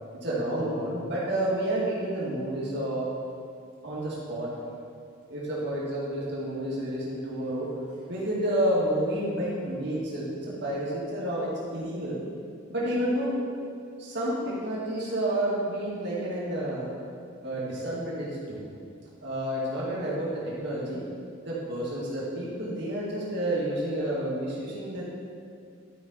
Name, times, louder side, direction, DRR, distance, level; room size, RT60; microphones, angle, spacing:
voice 1, 0.2-3.1 3.8-4.5 5.3-7.7 8.1-12.2 12.7-13.3 14.0-16.9 17.4-18.6 19.2-21.0 21.4-25.0, right 1 dB, 60° right, -7 dB, 2.2 m, -30 dB
11.5 x 5.2 x 4.4 m, 2.3 s
head